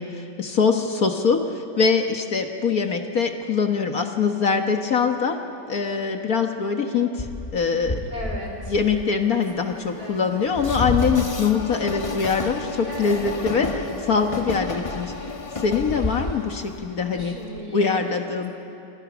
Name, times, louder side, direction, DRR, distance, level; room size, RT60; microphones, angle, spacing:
voice 1, 0.0-5.4 5.7-7.3 7.5-8.0 8.7-15.1 15.6-17.3 17.7-18.5, left 5 dB, 55° left, 4 dB, 1.7 m, -23 dB
Train, 7.2-17.6, left 2 dB, 20° left, 1.1 m, -31 dB
voice 2, 8.1-8.7 9.6-10.2 12.9-13.3 17.1-18.1, equal, 55° right, 0 dB, 5.0 m, -36 dB
28.0 x 27.0 x 6.2 m, 2.7 s
omnidirectional pair, 2.0 m